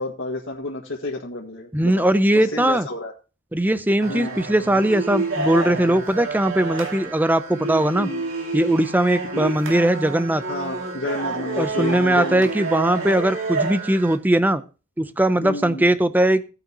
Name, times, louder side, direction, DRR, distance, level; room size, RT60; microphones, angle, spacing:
voice 1, 0.0-2.1 2.3-3.1 4.1-4.4 7.9-8.2 9.2-9.4 10.5-12.5 15.4-15.8, left 2 dB, 70° left, -2 dB, 1.8 m, -30 dB
voice 2, 1.7-2.9 3.5-8.1 8.5-10.4 11.6-14.6 15.0-16.4, right 1 dB, 10° right, 12 dB, 0.6 m, -20 dB
sound 1, 4.0-14.2, right 3 dB, 75° right, 2.5 m, -29 dB
16.0 x 9.2 x 2.9 m, 0.32 s
head